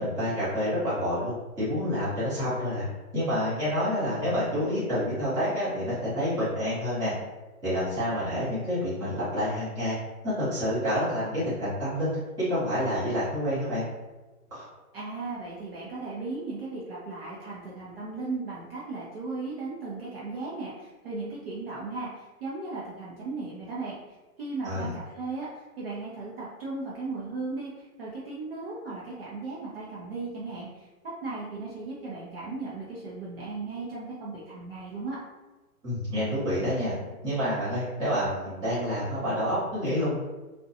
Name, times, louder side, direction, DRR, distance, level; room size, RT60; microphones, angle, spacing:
voice 1, 0.0-2.8 3.1-7.1 7.6-10.0 10.2-12.1 12.4-13.8 14.5-14.7 24.6-24.9 35.8-37.0 37.2-40.2, equal, 10° right, -13 dB, 0.7 m, -28 dB
voice 2, 14.9-24.0 24.4-25.5 25.8-30.9 31.2-35.2, right 3 dB, 40° right, -6 dB, 0.5 m, -36 dB
2.6 x 2.2 x 2.5 m, 1.2 s
hypercardioid pair, 155°, 45 cm